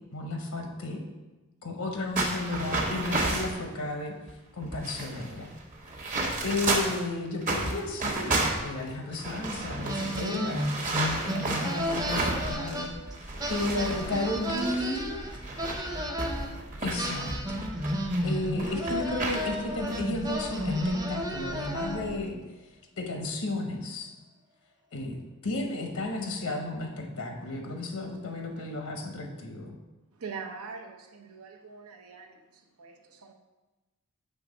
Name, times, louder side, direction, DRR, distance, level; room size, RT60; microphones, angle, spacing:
voice 1, 0.1-1.0 1.6-4.1 4.5-5.5 6.4-10.7 11.3-12.9 13.5-15.2 16.8-17.7 18.2-22.4 23.0-24.1 24.9-25.2 25.4-29.7, left 2 dB, 80° left, 1.0 m, -33 dB
sound 1, 2.2-3.6 4.3-4.4 4.6-7.0 7.4-12.9 13.1-18.2 18.6-19.4 19.9-20.0 20.6-20.9, right 2 dB, 35° right, 1.0 m, -32 dB
sound 2, 9.9-13.1 13.4-16.5 17.0-22.2, equal, 20° right, 0.6 m, -32 dB
sound 3, 11.8-22.2, equal, 65° right, 1.1 m, -43 dB
voice 2, 13.8-14.4 14.7-16.2, left 3 dB, 20° left, 0.3 m, -54 dB
voice 3, 30.1-33.3, right 5 dB, 85° right, 0.8 m, -43 dB
7.7 x 3.4 x 5.1 m
head